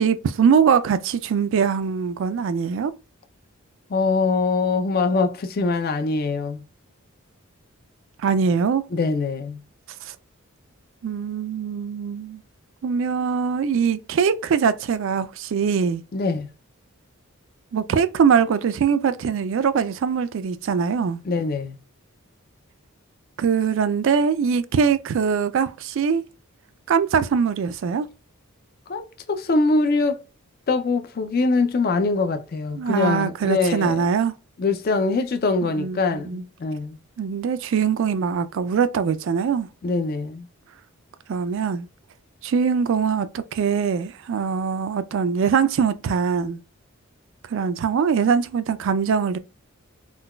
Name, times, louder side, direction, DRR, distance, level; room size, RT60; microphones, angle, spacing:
voice 1, 0.0-2.9 8.2-8.8 10.0-10.1 11.0-12.4 12.8-16.0 17.7-21.2 23.4-26.2 26.9-28.1 32.7-34.3 35.6-36.4 37.2-39.7 41.3-41.9 42.4-46.6 47.5-49.4, right 6 dB, 60° right, 0.3 m, -22 dB
voice 2, 3.9-6.6 8.9-9.6 16.1-16.5 21.2-21.8 28.9-30.2 30.7-34.0 34.6-37.0 39.8-40.5, left 3 dB, 45° left, 0.4 m, -23 dB
3.8 x 2.2 x 2.2 m
head